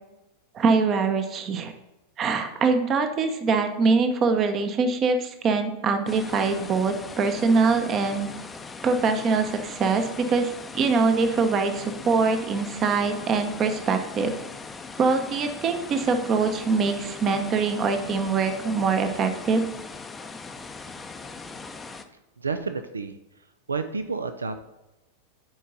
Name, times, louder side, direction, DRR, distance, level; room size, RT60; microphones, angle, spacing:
voice 1, 0.5-1.7 2.2-8.3 8.8-14.3 15.0-19.6, right 4 dB, 30° right, 7 dB, 0.8 m, -23 dB
sound 1, 6.1-22.0, left 4 dB, 15° left, 0.6 m, -40 dB
voice 2, 22.4-24.6, right 4 dB, 75° right, 9 dB, 0.4 m, -31 dB
10.0 x 4.7 x 4.0 m, 0.97 s
figure-of-eight pair, 90°, 0 cm